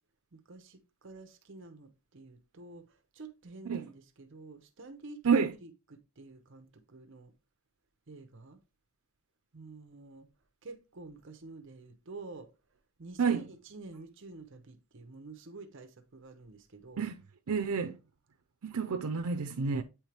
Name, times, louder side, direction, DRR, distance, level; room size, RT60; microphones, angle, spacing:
voice 1, 0.3-7.3 8.1-8.6 9.5-10.3 10.6-12.5 13.0-17.1, right 3 dB, 60° right, 0.8 m, -49 dB
voice 2, 17.5-18.0 18.6-19.8, right 5 dB, 90° right, 0.5 m, -29 dB
8.5 x 4.4 x 3.3 m
head